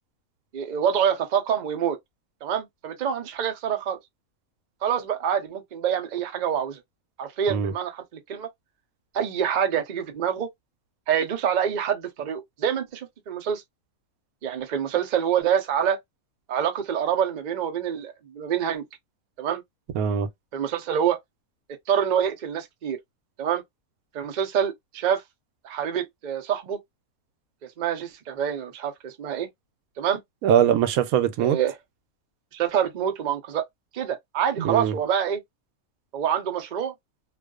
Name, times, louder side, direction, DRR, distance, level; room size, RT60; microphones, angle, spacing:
voice 1, 0.5-2.0 2.4-4.0 4.8-6.8 7.2-8.5 9.1-10.5 11.1-13.6 14.4-16.0 16.5-18.8 19.4-19.6 20.5-21.2 21.9-23.0 23.4-23.6 24.1-25.2 25.6-26.8 27.8-29.5 30.0-30.2 31.4-31.7 32.5-33.7 33.9-35.4 36.1-36.9, right 8 dB, 55° right, 0.5 m, -26 dB
voice 2, 19.9-20.3 30.4-31.6 34.6-34.9, right 9 dB, 85° right, 1.0 m, -21 dB
2.4 x 2.2 x 2.3 m
omnidirectional pair, 1.5 m